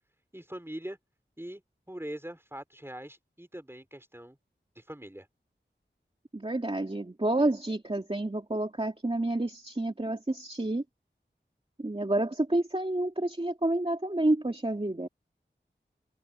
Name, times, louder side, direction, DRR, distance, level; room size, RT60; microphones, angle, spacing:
voice 1, 0.3-1.0 1.4-1.6 1.9-4.4 4.8-5.3, right 1 dB, 10° right, 4.6 m, -42 dB
voice 2, 6.3-10.8 11.8-15.1, right 1 dB, 30° right, 2.3 m, -29 dB
open air
wide cardioid pair, 55°, 19 cm